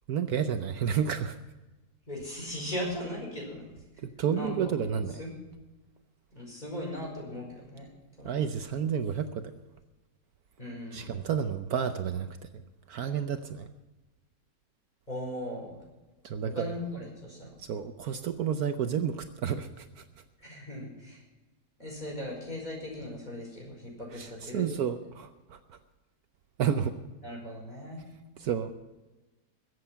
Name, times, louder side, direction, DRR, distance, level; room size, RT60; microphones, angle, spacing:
voice 1, 0.1-1.4 4.0-5.2 8.2-9.5 10.9-12.6 12.9-13.7 16.2-16.7 17.6-20.0 24.1-25.8 26.6-27.0 28.4-28.7, right 8 dB, 70° right, 8 dB, 1.2 m, -31 dB
voice 2, 2.1-3.7 4.0-4.1 4.3-4.7 5.2-5.3 6.3-7.9 8.2-8.3 10.6-11.1 15.1-15.8 16.5-17.5 20.4-21.2 21.8-24.6 27.2-28.0, left 1 dB, 25° left, -1 dB, 5.0 m, -38 dB
22.0 x 8.0 x 5.7 m, 1.1 s
omnidirectional pair, 1.8 m